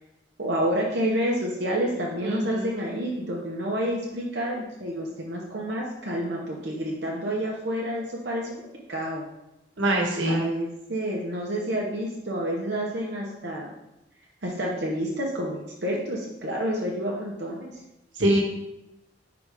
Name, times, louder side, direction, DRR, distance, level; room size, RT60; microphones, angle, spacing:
voice 1, 0.4-8.6 8.9-9.2 10.3-13.7 14.4-17.7, equal, 60° right, -3 dB, 0.9 m, -29 dB
voice 2, 2.2-2.7 9.8-10.4 18.2-18.4, right 1 dB, 80° right, 1 dB, 1.3 m, -23 dB
4.9 x 3.9 x 4.9 m, 0.90 s
head